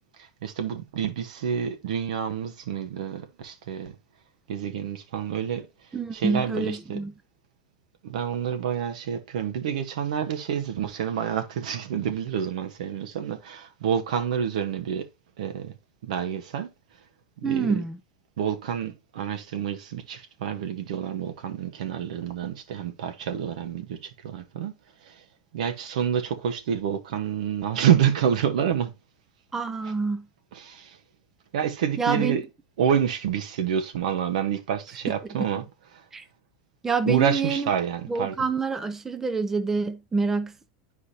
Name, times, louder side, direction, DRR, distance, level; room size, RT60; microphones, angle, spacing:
voice 1, 0.2-3.9 4.5-5.7 6.1-7.0 8.0-15.1 15.4-15.7 16.0-16.7 17.4-17.8 18.4-24.8 25.0-25.2 25.5-28.9 29.8-29.9 30.5-31.0 31.5-32.4 32.8-35.6 35.9-36.0 37.0-38.5, right 8 dB, 80° right, 1.1 m, -28 dB
voice 2, 5.9-7.1 17.4-18.0 29.5-30.3 32.0-32.4 35.4-35.5 36.1-36.2 36.8-37.6 38.1-40.5, right 4 dB, 10° right, 0.4 m, -27 dB
9.9 x 4.8 x 2.8 m
supercardioid pair, 165°, 4 cm